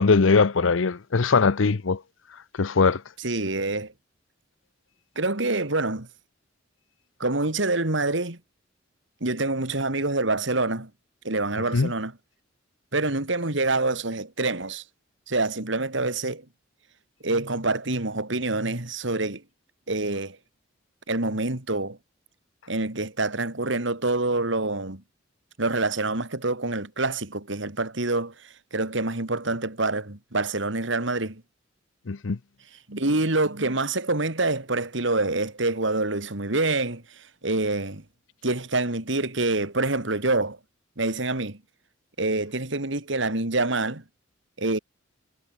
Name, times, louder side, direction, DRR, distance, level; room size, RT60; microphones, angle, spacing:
voice 1, 0.0-2.0 2.6-3.0 11.7-11.9 32.1-32.4, left 4 dB, 75° left, 0.7 m, -20 dB
voice 2, 3.2-3.9 5.2-6.1 7.2-8.4 9.2-10.9 11.2-12.1 12.9-14.8 15.3-16.4 17.2-19.4 19.9-20.4 21.1-22.0 22.7-25.0 25.6-31.4 32.9-38.0 38.4-40.6 41.0-41.6 42.2-44.0 44.6-44.8, right 2 dB, 65° right, 2.8 m, -26 dB
head